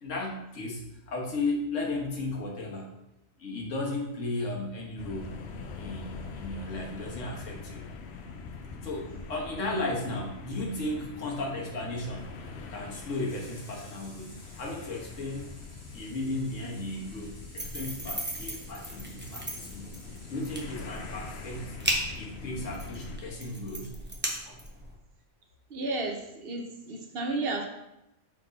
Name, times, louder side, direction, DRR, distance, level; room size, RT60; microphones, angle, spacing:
voice 1, 0.0-2.9 3.4-5.4 5.7-7.8 8.8-12.3 12.7-15.5 15.9-19.9 20.3-21.7 22.1-23.9 24.5-24.6, left 2 dB, 85° left, -1 dB, 1.6 m, -35 dB
sound 1, 5.0-23.2, left 4 dB, 65° left, 0.9 m, -44 dB
Water tap faucet / Sink (filling or washing), 11.5-23.3 24.6-24.7, equal, 35° left, 2.8 m, -55 dB
sound 2, 17.6-24.9, right 1 dB, 10° right, 0.8 m, -37 dB
voice 2, 25.7-27.7, right 2 dB, 55° right, 3 dB, 1.0 m, -32 dB
5.9 x 4.4 x 4.1 m, 0.85 s
omnidirectional pair, 1.3 m